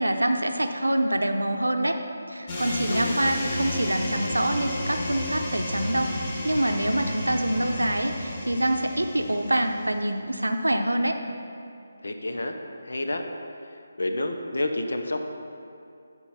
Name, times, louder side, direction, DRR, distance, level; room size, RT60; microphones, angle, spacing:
voice 1, 0.0-2.0 2.3-11.2, right 1 dB, 85° right, 6 dB, 0.7 m, -25 dB
sound 1, 2.5-10.0, left 1 dB, 30° left, 1.2 m, -32 dB
voice 2, 2.9-3.2 12.0-12.6 12.8-13.2 13.7-15.2, left 1 dB, 65° left, 5 dB, 0.8 m, -29 dB
9.9 x 4.6 x 5.7 m, 2.5 s
figure-of-eight pair, 150°, 0 cm